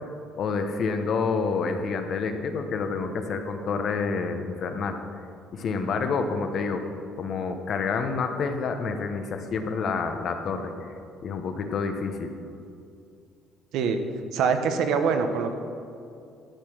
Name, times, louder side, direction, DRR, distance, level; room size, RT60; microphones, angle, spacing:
voice 1, 0.4-5.0 5.5-6.8 7.2-10.9 11.2-12.3, left 5 dB, 45° left, 6 dB, 0.9 m, -28 dB
voice 2, 14.3-15.5, right 6 dB, 70° right, 7 dB, 0.9 m, -24 dB
12.0 x 6.8 x 6.2 m, 2.5 s
cardioid pair, 150°, 0 cm